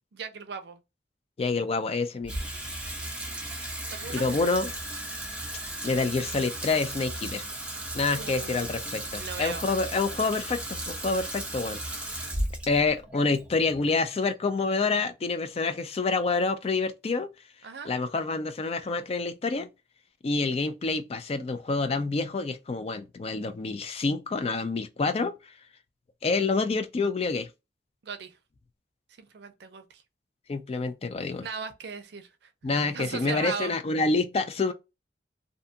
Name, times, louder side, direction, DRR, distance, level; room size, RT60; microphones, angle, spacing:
voice 1, 0.1-0.8 3.9-4.3 8.1-9.7 17.6-17.9 28.0-28.4 29.2-30.0 31.4-32.5 32.9-33.8, right 5 dB, 65° right, 0.5 m, -38 dB
voice 2, 1.4-2.4 4.1-4.7 5.8-7.4 7.9-12.3 12.7-17.3 17.8-19.7 20.2-25.3 26.2-27.5 30.5-31.5 32.6-34.7, left 3 dB, 35° left, 0.3 m, -27 dB
Water tap faucet / Sink (filling or washing), 2.2-14.6, right 1 dB, 5° right, 0.6 m, -36 dB
2.6 x 2.3 x 2.7 m
head